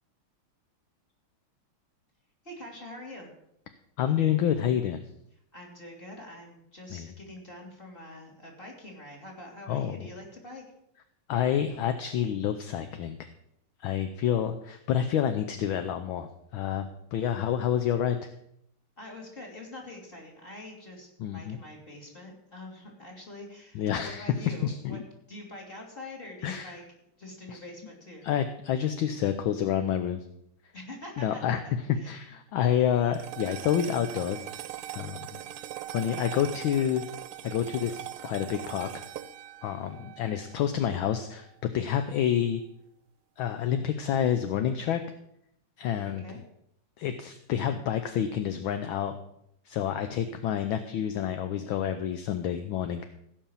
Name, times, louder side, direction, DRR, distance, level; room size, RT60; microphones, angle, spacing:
voice 1, 2.4-3.3 5.5-10.6 19.0-25.0 25.3-26.8 27.2-28.3 30.7-32.2 46.0-46.4, left 1 dB, 25° left, -1 dB, 3.0 m, -45 dB
voice 2, 4.0-5.0 6.9-7.1 9.7-10.1 11.3-13.3 13.8-18.3 21.2-21.6 23.7-25.0 26.4-26.7 27.5-27.6 28.2-30.2 31.2-31.6 32.1-34.5 34.9-35.4 35.9-37.0 37.4-38.0 38.2-38.9 39.6-42.6 43.4-45.0 45.8-46.2 47.0-49.2 49.6-53.0, left 9 dB, 70° left, 8 dB, 1.4 m, -28 dB
sound 1, 33.1-41.7, right 13 dB, 90° right, 1.6 m, -41 dB
16.0 x 5.7 x 7.0 m, 0.75 s
omnidirectional pair, 2.4 m